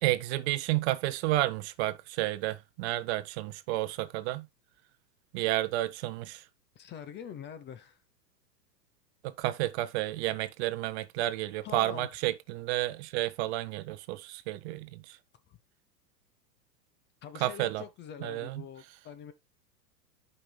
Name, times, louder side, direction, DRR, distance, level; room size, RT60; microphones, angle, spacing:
voice 1, 0.0-4.5 5.3-6.4 9.2-15.2 17.4-17.8 18.2-18.6, right 16 dB, 40° right, 0.7 m, -31 dB
voice 2, 6.7-8.0 11.6-12.1 15.5-15.6 17.2-19.3, left 8 dB, 20° left, 0.7 m, -44 dB
14.5 x 5.3 x 2.2 m
hypercardioid pair, 110°, 49 cm